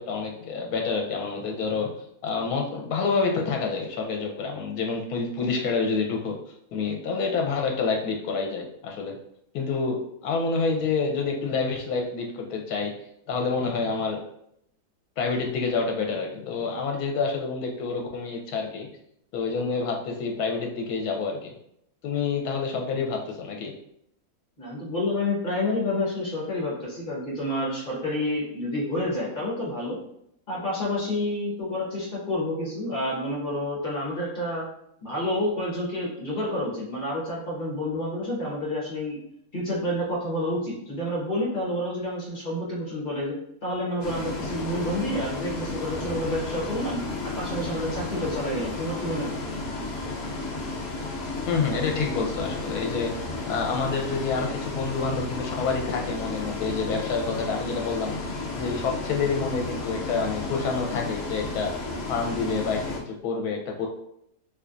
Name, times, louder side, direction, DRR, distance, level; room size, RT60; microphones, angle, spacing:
voice 1, 0.0-1.9 2.2-6.4 6.7-9.2 9.5-12.9 13.3-14.2 15.2-18.9 19.3-21.5 22.0-23.7 51.5-53.1 53.5-58.1 58.5-61.7 62.1-63.9, left 4 dB, 80° left, 1 dB, 1.1 m, -28 dB
voice 2, 24.6-30.0 30.5-34.6 35.0-39.2 39.5-43.4 43.6-47.0 47.4-49.4, left 1 dB, 35° left, -5 dB, 1.3 m, -29 dB
Bus, 44.0-63.0, left 3 dB, 65° left, 0.6 m, -33 dB
3.4 x 3.0 x 2.5 m, 0.74 s
omnidirectional pair, 1.6 m